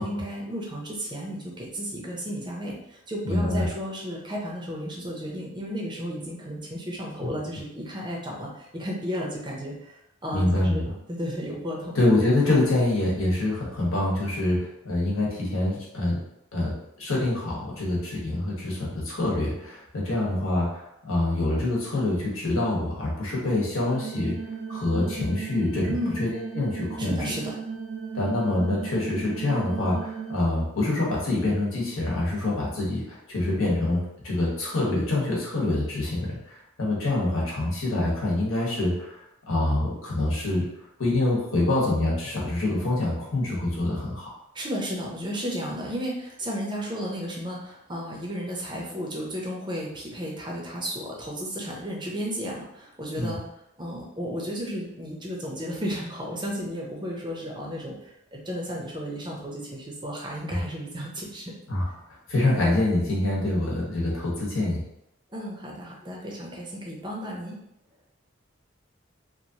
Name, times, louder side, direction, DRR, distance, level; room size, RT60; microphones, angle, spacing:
voice 1, 0.0-11.9 25.9-26.2 27.0-27.6 44.5-53.4 53.8-61.5 65.3-67.6, equal, 20° right, -2 dB, 0.5 m, -33 dB
voice 2, 3.2-3.7 10.3-10.8 11.9-16.2 16.5-16.7 17.0-24.3 24.7-27.2 28.1-39.2 39.5-40.7 41.0-44.3 53.2-53.4 60.5-60.6 61.7-61.8 62.3-64.8, left 2 dB, 90° left, -4 dB, 1.1 m, -25 dB
sound 1, 23.9-30.4, right 5 dB, 80° right, 0.4 m, -36 dB
2.9 x 2.5 x 2.7 m, 0.82 s
head